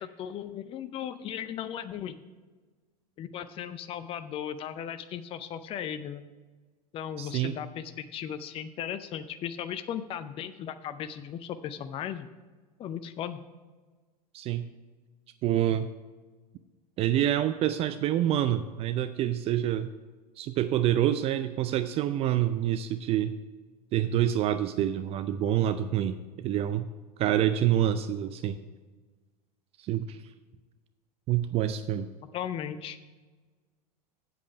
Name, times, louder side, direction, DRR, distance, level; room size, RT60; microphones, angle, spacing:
voice 1, 0.0-2.2 3.2-6.2 6.9-12.3 12.8-13.4 32.3-33.0, left 9 dB, 25° left, 12 dB, 0.5 m, -36 dB
voice 2, 7.2-7.6 14.3-14.7 15.4-15.9 17.0-19.9 20.4-23.3 23.9-26.9 27.2-28.6 29.8-30.2 31.3-32.1, right 11 dB, 30° right, 11 dB, 0.4 m, -27 dB
8.4 x 7.7 x 4.8 m, 1.3 s
figure-of-eight pair, 90°, 21 cm